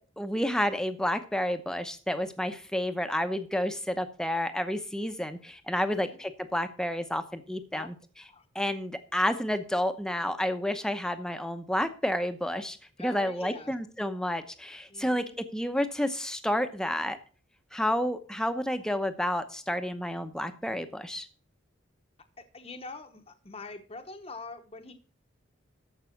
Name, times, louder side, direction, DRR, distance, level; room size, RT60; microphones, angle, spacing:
voice 1, 0.2-7.9 8.5-17.2 17.7-21.3, left 1 dB, 5° left, 8 dB, 0.8 m, -30 dB
voice 2, 5.9-6.2 7.7-7.9 8.3-8.5 13.0-13.7 14.9-15.4 22.4-24.9, left 3 dB, 30° left, 5 dB, 0.9 m, -44 dB
13.5 x 5.5 x 5.9 m, 0.40 s
head